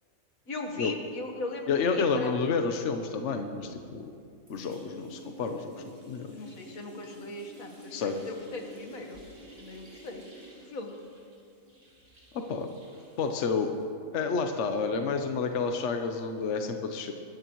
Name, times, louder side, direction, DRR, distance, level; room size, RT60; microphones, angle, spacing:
voice 1, 0.5-2.3 6.3-9.2 9.5-10.3 10.7-11.0, left 2 dB, 85° left, 3 dB, 1.9 m, -39 dB
voice 2, 1.7-4.0 4.5-6.3 7.9-8.2 12.3-12.7 13.2-13.7 14.1-17.1, left 5 dB, 60° left, 6 dB, 1.1 m, -30 dB
sound 1, 4.1-4.2 4.5-13.8, equal, 60° right, 4.7 m, -51 dB
23.5 x 13.5 x 3.1 m, 2.4 s
omnidirectional pair, 1.4 m